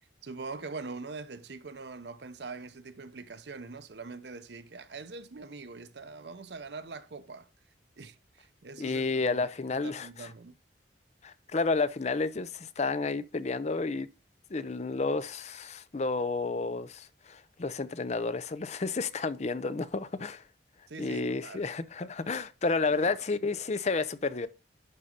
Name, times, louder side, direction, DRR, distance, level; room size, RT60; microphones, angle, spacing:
voice 1, 0.2-7.5 8.0-10.6 20.9-21.7 22.0-22.1 22.9-23.2, right 4 dB, 65° right, 0.7 m, -43 dB
voice 2, 8.8-10.3 11.2-14.1 14.5-20.4 21.0-24.5, left 3 dB, 40° left, 0.6 m, -31 dB
11.0 x 4.1 x 5.1 m
head